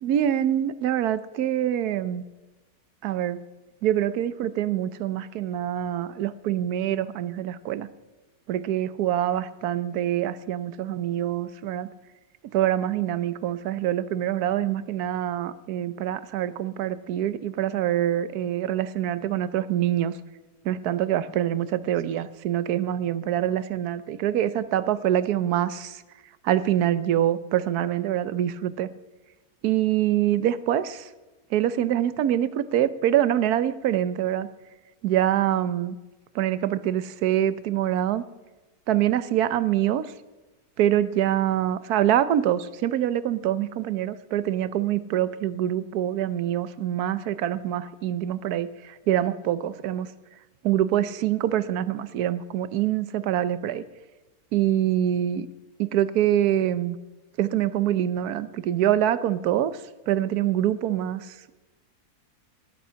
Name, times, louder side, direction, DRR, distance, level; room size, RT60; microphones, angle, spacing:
voice 1, 0.0-2.2 3.0-3.4 3.8-7.9 8.5-11.9 12.5-20.1 20.6-26.0 26.4-28.9 29.6-31.1 31.5-34.5 35.0-35.9 36.3-38.2 38.9-40.1 40.8-50.1 50.6-53.8 54.5-55.5 55.8-57.0 57.4-61.5, right 11 dB, 80° right, 15 dB, 1.3 m, -25 dB
18.0 x 11.5 x 5.7 m, 1.1 s
omnidirectional pair, 1.6 m